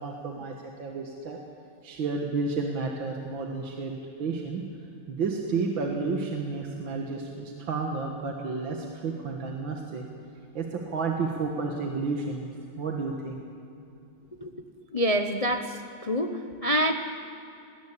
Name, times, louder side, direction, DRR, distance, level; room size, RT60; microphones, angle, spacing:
voice 1, 0.0-1.4 1.8-4.6 5.1-10.1 10.5-12.5 12.8-13.4, right 4 dB, 65° right, 1 dB, 2.2 m, -31 dB
voice 2, 14.9-16.9, equal, 55° left, 5 dB, 0.4 m, -27 dB
20.5 x 18.0 x 8.4 m, 2.6 s
omnidirectional pair, 2.3 m